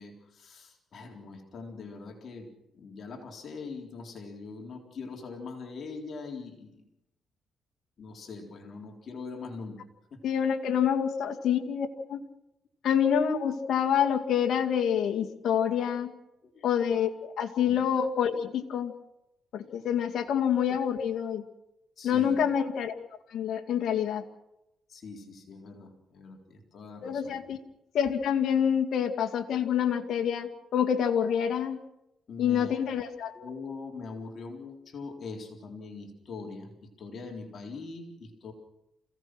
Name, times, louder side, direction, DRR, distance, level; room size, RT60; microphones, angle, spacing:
voice 1, 0.0-6.9 8.0-9.8 10.1-10.2 11.2-11.3 16.4-16.7 17.7-17.8 22.0-22.5 24.9-27.5 32.3-32.8 33.3-38.5, left 4 dB, 55° left, 2 dB, 3.9 m, -42 dB
voice 2, 10.2-12.2 12.8-16.1 16.6-18.9 19.5-21.4 22.0-22.9 23.3-24.2 27.0-27.6 27.9-31.8 32.4-33.3, left 8 dB, 70° left, 5 dB, 2.2 m, -27 dB
28.0 x 17.0 x 6.2 m, 0.88 s
cardioid pair, 90°, 0 cm